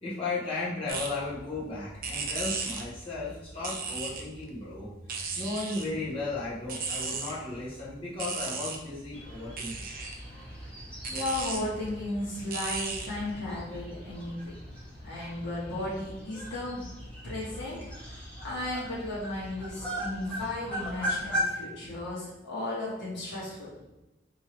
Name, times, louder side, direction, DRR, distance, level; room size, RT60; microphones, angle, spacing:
voice 1, 0.0-4.9 5.3-9.8, left 3 dB, 30° left, -10 dB, 1.5 m, -35 dB
sound 1, 0.9-13.7, right 4 dB, 45° right, 0.6 m, -38 dB
sound 2, 9.1-21.4, equal, 5° left, 1.2 m, -39 dB
voice 2, 11.1-14.5 15.0-16.9 17.2-23.7, left 1 dB, 60° left, -7 dB, 1.4 m, -35 dB
3.4 x 3.0 x 4.5 m, 1.0 s
head